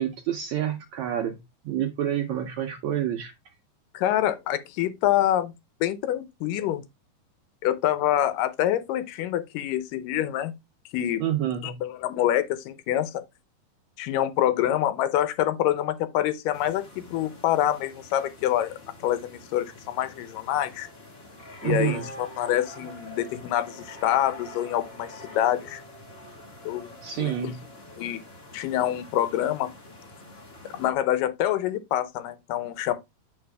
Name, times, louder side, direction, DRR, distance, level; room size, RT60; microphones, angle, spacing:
voice 1, 0.0-3.5 11.2-11.8 21.6-22.1 27.0-27.6, right 11 dB, 75° right, 1.7 m, -28 dB
voice 2, 3.9-5.5 5.8-6.8 7.6-10.5 10.9-11.2 11.6-13.2 14.0-16.8 17.1-20.9 21.6-25.8 26.7-26.9 27.2-27.5 28.0-28.2 28.5-29.7 30.7-32.9, left 12 dB, 80° left, 2.4 m, -26 dB
sound 1, 16.5-30.9, left 1 dB, 60° left, 0.6 m, -45 dB
8.9 x 4.4 x 3.4 m
omnidirectional pair, 3.9 m